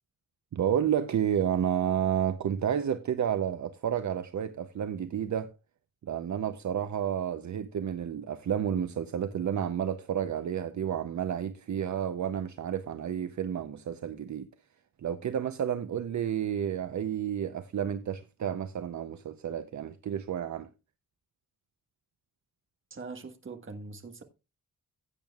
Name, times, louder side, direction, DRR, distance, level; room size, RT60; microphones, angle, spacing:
voice 1, 0.5-5.5 6.0-14.5 15.0-20.7, right 9 dB, 60° right, 0.6 m, -31 dB
voice 2, 22.9-24.2, right 4 dB, 40° right, 1.4 m, -42 dB
16.0 x 8.8 x 2.3 m
wide cardioid pair, 175°, 33 cm